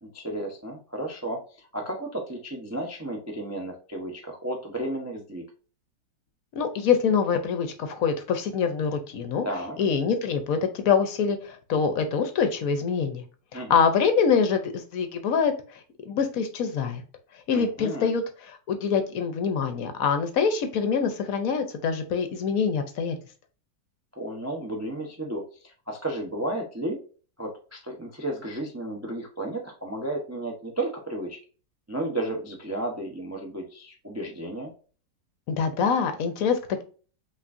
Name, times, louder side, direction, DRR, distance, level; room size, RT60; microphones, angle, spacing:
voice 1, 0.0-5.5 9.4-9.8 13.5-13.8 17.5-18.1 24.1-27.0 27.4-31.4 31.9-34.7, right 1 dB, 25° right, 1 dB, 0.3 m, -33 dB
voice 2, 6.5-9.5 9.8-13.2 13.5-15.5 16.0-17.0 17.5-23.1 35.5-36.8, left 6 dB, 65° left, 8 dB, 1.0 m, -25 dB
5.8 x 2.9 x 2.5 m, 0.38 s
omnidirectional pair, 1.8 m